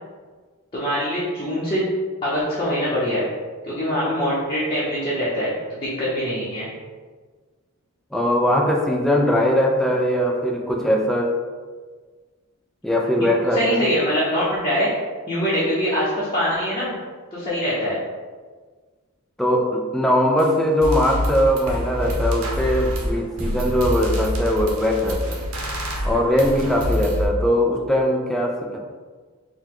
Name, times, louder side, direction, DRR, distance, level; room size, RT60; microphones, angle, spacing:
voice 1, 0.7-1.9 2.2-3.3 3.6-6.7 13.5-14.9 15.3-16.9 17.3-18.0, equal, 25° left, -9 dB, 0.8 m, -23 dB
voice 2, 8.1-11.3 12.8-13.8 19.4-25.4 26.0-28.8, equal, ahead, -1 dB, 0.4 m, -20 dB
sound 1, 20.4-20.5 20.8-27.2, equal, 70° right, 0.8 m, -26 dB
4.7 x 2.2 x 3.7 m, 1.4 s
head